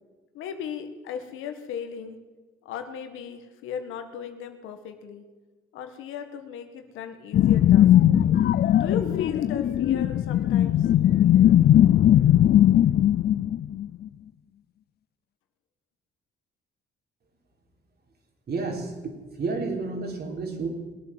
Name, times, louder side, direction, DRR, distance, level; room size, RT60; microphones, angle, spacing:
voice 1, 0.3-2.2 2.6-5.2 5.7-7.9 8.7-10.9, left 7 dB, 90° left, 7 dB, 1.7 m, -37 dB
sound 1, 7.3-14.1, left 11 dB, 55° left, 0.4 m, -19 dB
voice 2, 18.5-19.1 19.4-20.7, right 3 dB, 55° right, 2 dB, 3.6 m, -30 dB
21.0 x 8.7 x 7.6 m, 1.3 s
cardioid pair, 90°, 20 cm